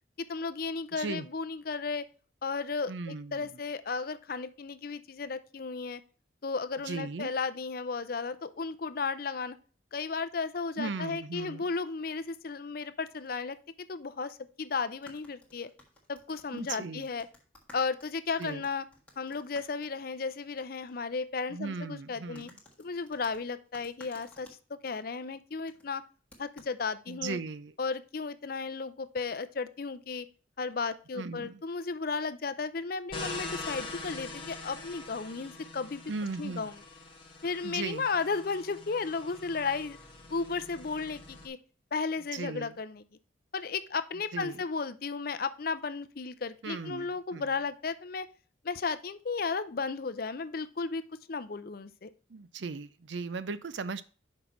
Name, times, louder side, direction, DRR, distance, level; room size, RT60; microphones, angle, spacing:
voice 1, 0.2-2.1 2.4-6.0 6.4-9.6 9.9-13.6 13.9-15.7 16.1-17.3 17.7-18.9 19.2-22.5 22.8-26.0 26.4-27.4 27.8-30.3 30.6-36.0 36.4-36.7 37.4-40.0 40.3-41.6 41.9-43.0 43.5-48.3 48.6-51.0 51.3-52.1, left 4 dB, 50° left, 12 dB, 0.5 m, -34 dB
voice 2, 0.9-1.3 2.9-3.5 6.8-7.3 10.8-11.7 16.5-17.1 18.4-18.6 21.5-22.6 27.1-27.7 31.1-31.6 36.1-36.7 37.6-38.1 42.3-42.8 44.3-44.6 46.6-47.5 52.3-54.0, right 4 dB, 65° right, 14 dB, 0.5 m, -37 dB
sound 1, 12.1-12.3 13.1-13.3 13.5-13.6 14.9-20.6 20.9-21.0 22.4-24.6 25.7-25.9 26.3-26.7, left 2 dB, 5° left, 1.5 m, -57 dB
sound 2, 33.1-41.5, left 3 dB, 25° left, 1.2 m, -44 dB
6.1 x 5.3 x 4.3 m, 0.38 s
head